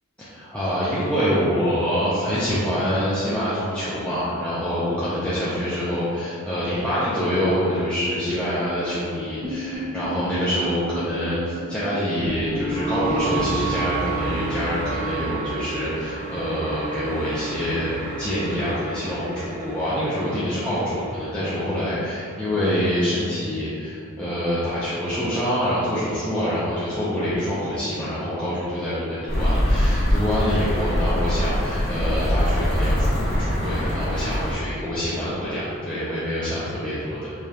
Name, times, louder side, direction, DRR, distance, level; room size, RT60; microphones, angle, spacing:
voice 1, 0.2-17.9 18.2-37.2, equal, 5° left, -12 dB, 0.5 m, -25 dB
sound 1, 9.4-21.6, right 3 dB, 90° right, 1.0 m, -31 dB
sound 2, 29.3-34.5, equal, 50° left, 0.9 m, -22 dB
4.9 x 2.4 x 2.8 m, 2.4 s
head